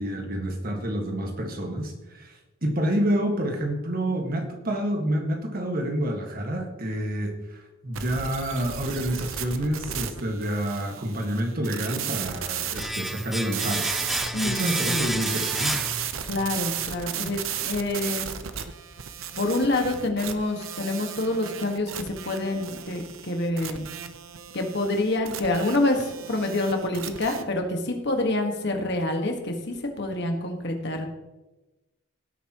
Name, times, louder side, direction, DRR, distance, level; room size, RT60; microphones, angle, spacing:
voice 1, 0.0-13.9 14.4-15.9, right 1 dB, 45° right, 3 dB, 1.7 m, -28 dB
sound 1, 7.9-27.4, right 9 dB, 75° right, 0.8 m, -35 dB
Domestic sounds home sounds, 12.8-16.6 16.8-17.0, equal, ahead, 0.4 m, -31 dB
voice 2, 14.3-15.0 16.3-18.3 19.3-23.9 24.5-31.1, left 2 dB, 55° left, 3 dB, 1.7 m, -27 dB
17.0 x 8.4 x 3.0 m, 1.0 s
head